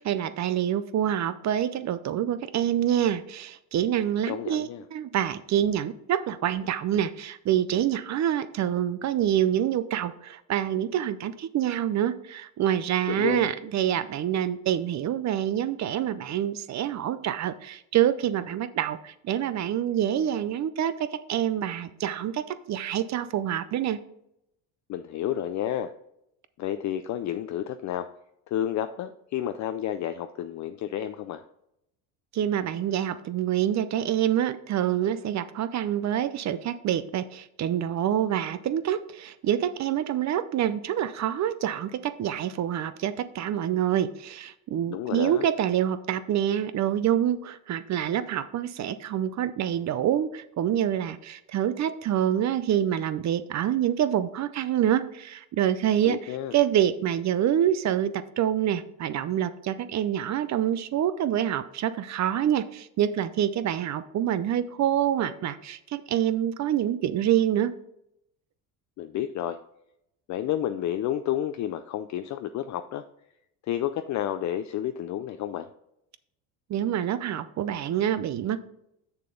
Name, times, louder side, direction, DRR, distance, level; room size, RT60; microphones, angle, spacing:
voice 1, 0.0-24.0 32.3-67.7 76.7-78.6, right 10 dB, 40° right, 13 dB, 0.6 m, -26 dB
voice 2, 4.3-4.8 13.1-13.5 24.9-25.9 26.6-28.1 28.5-31.4 44.9-45.4 56.0-56.5 69.0-69.6 70.3-73.0 73.6-75.7, left 11 dB, 45° left, 10 dB, 0.5 m, -30 dB
6.8 x 6.8 x 3.8 m, 0.79 s
supercardioid pair, 105°, 43 cm